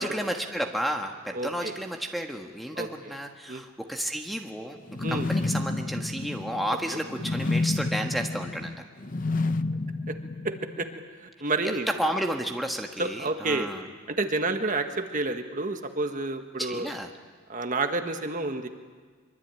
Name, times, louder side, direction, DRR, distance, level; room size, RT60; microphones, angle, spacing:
voice 1, 0.0-4.8 5.1-8.7 11.6-13.9 16.6-17.1, equal, ahead, 3 dB, 1.4 m, -32 dB
voice 2, 1.3-1.7 2.7-2.9 3.5-3.6 5.0-5.3 10.4-10.9 11.2-11.9 13.0-13.7 14.1-16.9 17.5-18.7, right 2 dB, 40° right, 6 dB, 1.6 m, -29 dB
sound 1, 4.9-10.9, left 2 dB, 40° left, 0.8 m, -30 dB
24.0 x 23.5 x 9.1 m, 1.5 s
head